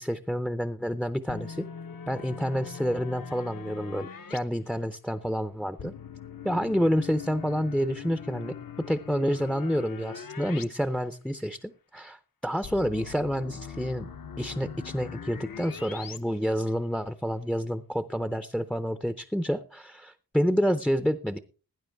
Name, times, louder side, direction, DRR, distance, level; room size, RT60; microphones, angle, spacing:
voice 1, 0.0-1.6 2.1-5.9 6.4-14.1 14.4-21.4, equal, ahead, 11 dB, 0.5 m, -29 dB
sound 1, 1.3-4.4 5.8-10.7 11.0-11.1 12.6-16.2, left 7 dB, 65° left, 0.9 m, -42 dB
17.5 x 9.7 x 3.4 m, 0.35 s
wide cardioid pair, 145°, 37 cm